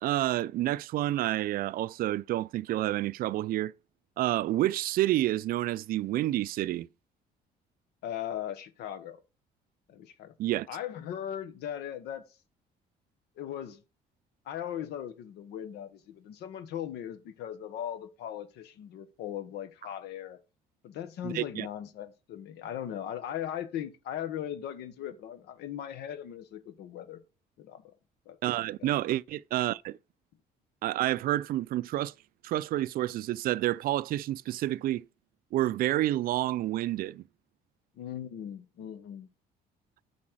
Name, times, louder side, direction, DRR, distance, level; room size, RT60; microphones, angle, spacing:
voice 1, 0.0-3.7 4.2-6.9 10.4-10.7 21.2-21.7 28.4-30.0 30.8-32.1 32.4-35.0 35.5-37.2, right 14 dB, 60° right, 0.4 m, -29 dB
voice 2, 8.0-9.2 9.9-10.3 10.7-12.2 13.4-13.8 14.4-20.4 20.8-27.2 27.6-27.9 28.2-28.4 28.8-28.9 38.0-39.3, left 10 dB, 80° left, 1.3 m, -38 dB
8.5 x 4.2 x 6.3 m
cardioid pair, 110°, 17 cm